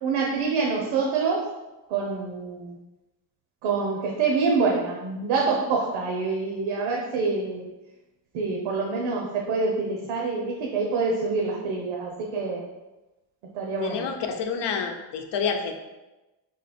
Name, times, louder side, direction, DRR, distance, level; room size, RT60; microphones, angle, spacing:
voice 1, 0.0-1.4 1.9-2.8 3.6-7.7 8.3-12.7 13.5-14.0, right 4 dB, 80° right, -1 dB, 1.0 m, -26 dB
voice 2, 13.8-15.7, left 6 dB, 60° left, 5 dB, 0.9 m, -28 dB
5.2 x 4.2 x 4.3 m, 1.1 s
cardioid pair, 125°, 46 cm